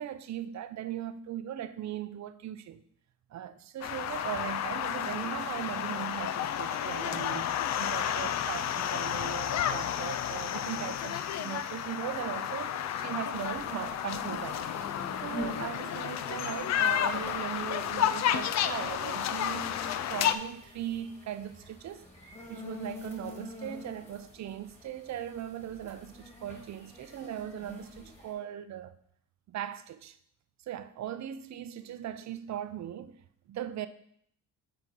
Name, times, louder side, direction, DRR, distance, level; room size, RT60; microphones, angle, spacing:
voice 1, 0.0-2.8 3.3-14.7 15.2-28.9 29.5-30.2 30.7-33.2 33.5-33.9, right 11 dB, 50° right, 0.6 m, -39 dB
sound 1, 3.8-20.3, left 10 dB, 50° left, 0.5 m, -31 dB
sound 2, 13.3-28.3, left 2 dB, 20° left, 2.3 m, -47 dB
7.9 x 4.3 x 4.6 m
cardioid pair, 95°, 35 cm